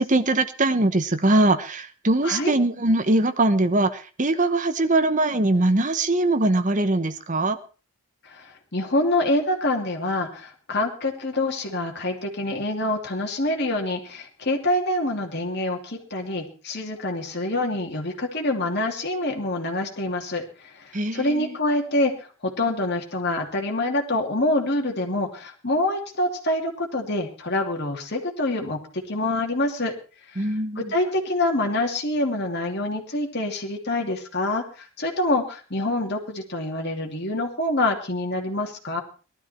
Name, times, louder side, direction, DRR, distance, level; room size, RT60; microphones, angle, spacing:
voice 1, 0.0-7.6 20.9-21.5 30.4-30.9, right 2 dB, 35° right, 10 dB, 1.0 m, -22 dB
voice 2, 2.2-2.6 8.3-8.4 8.7-20.4 21.1-22.1 22.4-28.8 29.1-29.9 30.4-30.5 30.8-39.0, left 1 dB, 50° left, 1 dB, 2.8 m, -26 dB
18.5 x 12.5 x 4.4 m, 0.36 s
head